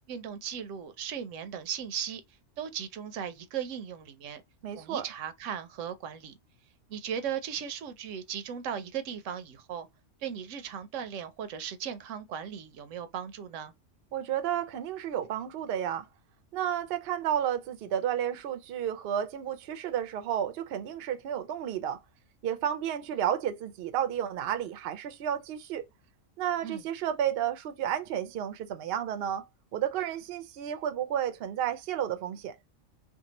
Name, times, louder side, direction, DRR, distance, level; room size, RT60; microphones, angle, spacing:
voice 1, 0.1-2.2 2.6-4.4 4.8-6.3 6.9-9.9 10.2-13.7 26.6-26.8, right 8 dB, 85° right, 0.9 m, -37 dB
voice 2, 4.6-5.0 14.1-16.1 16.5-22.0 22.4-25.8 26.4-29.5 29.7-32.6, right 10 dB, 60° right, 0.7 m, -31 dB
2.7 x 2.3 x 2.8 m
omnidirectional pair, 1.3 m